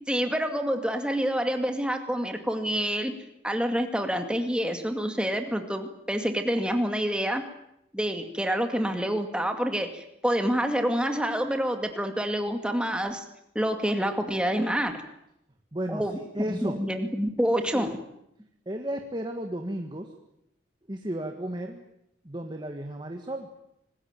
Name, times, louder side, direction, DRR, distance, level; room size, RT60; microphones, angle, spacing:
voice 1, 0.1-3.1 3.4-7.4 7.9-13.2 13.5-14.9 15.9-16.2 16.5-18.0, equal, 5° right, 5 dB, 2.3 m, -27 dB
voice 2, 15.7-16.1 16.3-16.8 17.7-17.9 18.6-20.1 20.9-21.8 22.2-23.5, right 1 dB, 25° right, 4 dB, 1.7 m, -34 dB
25.5 x 20.5 x 9.0 m, 0.79 s
head